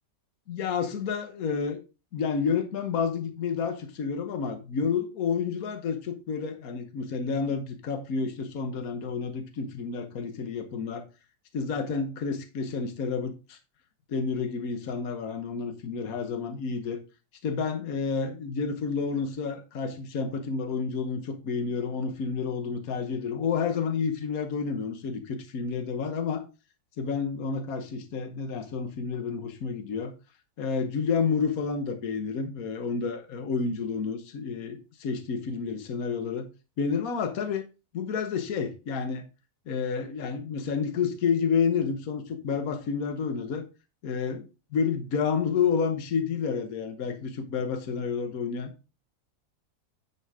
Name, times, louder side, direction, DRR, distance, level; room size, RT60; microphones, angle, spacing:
voice 1, 0.5-1.8 2.1-11.0 11.5-13.6 14.1-17.0 17.4-26.4 27.0-30.1 30.6-36.5 36.8-37.7 37.9-39.3 39.7-43.6 44.0-48.7, left 5 dB, 60° left, 1.5 m, -30 dB
9.4 x 5.6 x 3.7 m
omnidirectional pair, 1.8 m